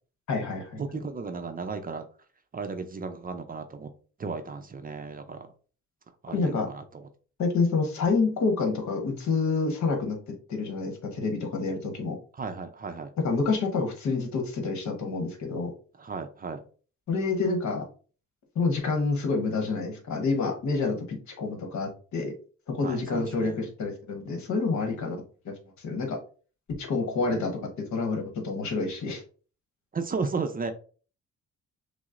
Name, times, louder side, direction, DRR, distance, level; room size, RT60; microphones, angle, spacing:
voice 1, 0.3-0.8 6.3-6.7 7.4-12.2 13.2-15.7 17.1-17.8 18.5-22.3 22.7-26.2 26.8-27.5 27.9-29.2, left 4 dB, 70° left, 4 dB, 1.1 m, -28 dB
voice 2, 0.8-2.1 2.5-3.9 4.2-5.5 6.2-7.1 12.4-13.1 16.0-16.6 22.8-23.6 24.9-25.1 27.3-27.5 29.9-30.7, right 4 dB, 30° right, 7 dB, 0.5 m, -34 dB
6.0 x 2.0 x 2.4 m, 0.39 s
cardioid pair, 90°, 30 cm